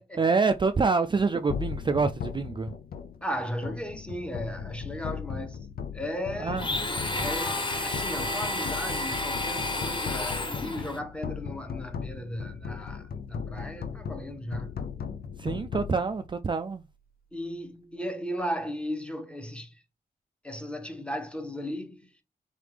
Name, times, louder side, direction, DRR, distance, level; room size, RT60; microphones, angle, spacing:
voice 1, 0.2-2.7 6.4-6.7 15.4-16.8, right 4 dB, 30° right, 0.3 m, -26 dB
sound 1, 1.5-16.8, left 6 dB, 70° left, 0.5 m, -38 dB
voice 2, 3.2-5.7 5.9-6.6 7.2-14.7 17.3-19.8 20.4-22.1, equal, 5° left, 1.1 m, -36 dB
Domestic sounds home sounds, 6.6-11.0, left 2 dB, 30° left, 0.9 m, -31 dB
4.0 x 3.3 x 3.3 m
cardioid pair, 70°, 16 cm